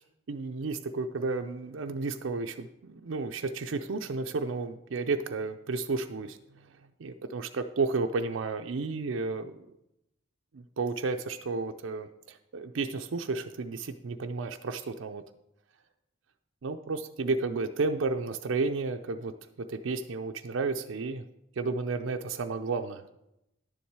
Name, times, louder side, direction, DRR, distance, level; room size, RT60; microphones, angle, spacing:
voice 1, 0.3-6.7 7.0-9.7 10.5-15.2 16.6-21.2 21.6-23.0, right 3 dB, 75° right, 6 dB, 0.5 m, -32 dB
10.5 x 7.2 x 4.6 m, 0.84 s
head